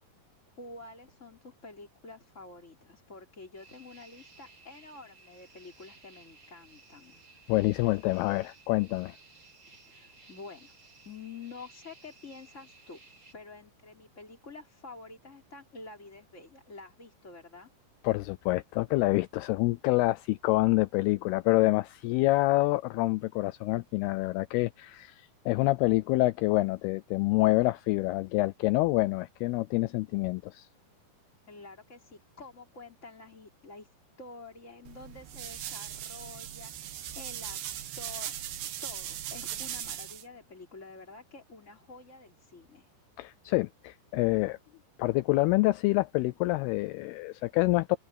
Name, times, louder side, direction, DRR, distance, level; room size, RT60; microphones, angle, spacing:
voice 1, 0.6-7.2 9.7-10.7 11.0-13.0 13.3-17.7 31.5-33.9 34.2-37.6 38.0-38.3 38.8-42.9, left 3 dB, 15° left, 4.1 m, -48 dB
sound 1, 3.5-13.3, right 3 dB, 30° right, 1.6 m, -57 dB
voice 2, 7.5-9.2 18.0-30.7 43.2-44.6 45.0-48.0, left 20 dB, 80° left, 2.5 m, -27 dB
sound 2, 34.9-40.2, right 11 dB, 80° right, 3.8 m, -39 dB
omnidirectional pair, 4.8 m